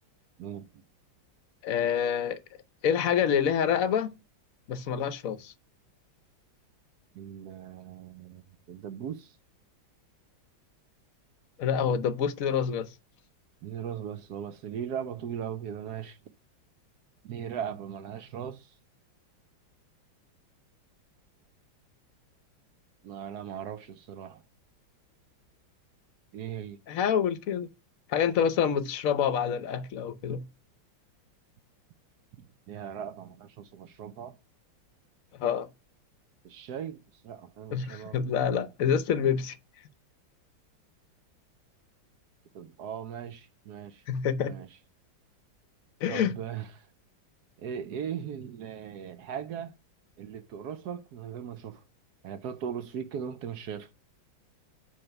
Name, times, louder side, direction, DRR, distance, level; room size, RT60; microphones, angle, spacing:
voice 1, 0.4-0.8 7.1-9.4 13.6-16.2 17.2-18.7 23.0-24.4 26.3-26.8 32.4-34.4 36.4-38.2 42.5-44.0 44.4-44.7 46.1-46.9 47.6-49.8 50.2-51.8 52.2-53.9, right 8 dB, 65° right, 1.0 m, -38 dB
voice 2, 1.6-2.4 2.8-4.1 4.7-5.5 11.6-12.9 26.9-27.7 28.1-30.4 35.4-35.7 37.7-39.6 44.1-44.6 46.0-46.3, left 8 dB, 60° left, 0.9 m, -27 dB
8.7 x 3.2 x 5.8 m
omnidirectional pair, 2.2 m